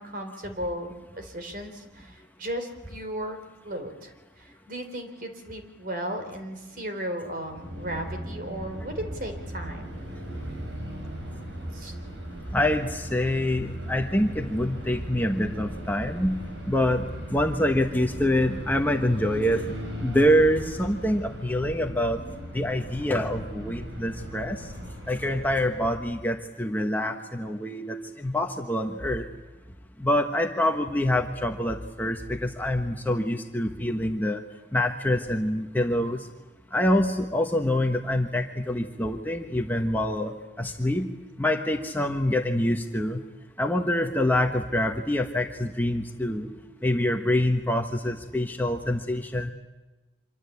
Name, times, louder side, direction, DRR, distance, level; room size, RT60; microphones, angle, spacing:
voice 1, 0.0-3.4 3.6-10.0 11.7-11.9, right 1 dB, 45° right, 6 dB, 3.9 m, -35 dB
sound 1, 7.5-26.2, equal, 70° right, 6.1 m, -38 dB
voice 2, 12.5-16.4 16.7-19.7 20.0-22.2 22.5-24.7 25.1-29.3 30.0-34.4 34.7-36.3 36.7-41.1 41.4-43.2 43.6-46.5 46.8-49.5, left 1 dB, 10° left, 3 dB, 1.2 m, -26 dB
26.5 x 24.0 x 8.5 m, 1.2 s
head